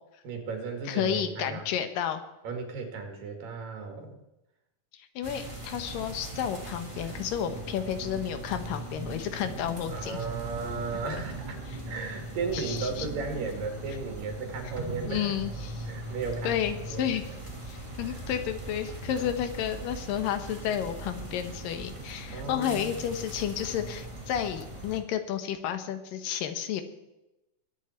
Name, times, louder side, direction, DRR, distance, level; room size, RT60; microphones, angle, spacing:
voice 1, 0.2-1.6 2.4-4.2 7.0-7.1 7.5-7.6 9.9-15.3 15.9-16.6 16.9-17.2 18.0-18.2 19.1-19.3 22.3-23.0, right 4 dB, 75° right, 3 dB, 3.9 m, -35 dB
voice 2, 0.9-2.2 4.9-10.2 12.5-13.1 15.1-15.9 16.4-17.2 17.7-26.8, left 9 dB, 80° left, 9 dB, 2.8 m, -31 dB
sound 1, 5.2-25.0, right 2 dB, 10° right, 1.5 m, -40 dB
21.5 x 8.8 x 4.4 m, 0.93 s
omnidirectional pair, 3.9 m